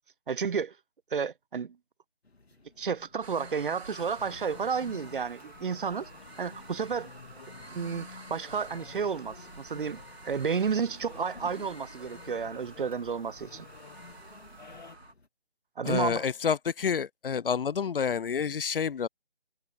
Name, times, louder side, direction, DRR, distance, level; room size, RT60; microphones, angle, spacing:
voice 1, 0.3-0.8 1.1-1.8 2.8-6.1 6.4-7.1 7.7-13.7 15.8-16.3, right 6 dB, 55° right, 0.5 m, -31 dB
sound 1, 2.2-15.3, left 3 dB, 85° left, 2.7 m, -60 dB
sound 2, 3.2-15.1, right 3 dB, 85° right, 2.9 m, -49 dB
sound 3, 4.0-15.0, left 5 dB, 45° left, 1.9 m, -50 dB
voice 2, 15.8-19.1, left 7 dB, 60° left, 0.5 m, -28 dB
figure-of-eight pair, 165°, 31 cm